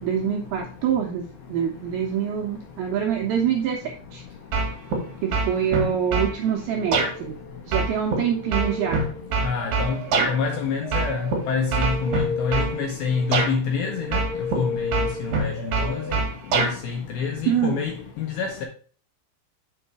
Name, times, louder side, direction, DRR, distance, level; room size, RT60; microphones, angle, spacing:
voice 1, 0.0-4.2 5.2-7.4 7.7-9.0 17.5-17.8, right 8 dB, 80° right, 2.2 m, -25 dB
sound 1, 4.5-5.0 5.3-6.3 6.9-7.1 7.7-10.3 10.9-11.4 11.7-12.7 13.3-13.5 14.1-14.6 14.9-16.7, right 3 dB, 55° right, 2.4 m, -23 dB
sound 2, 6.8-7.6 8.1-16.1, left 3 dB, 35° right, 2.2 m, -34 dB
voice 2, 9.4-10.0 10.3-14.2 14.5-14.8 15.4-15.5 15.8-16.0 16.6-18.7, left 5 dB, 75° left, 2.3 m, -27 dB
6.3 x 5.6 x 4.7 m
omnidirectional pair, 5.4 m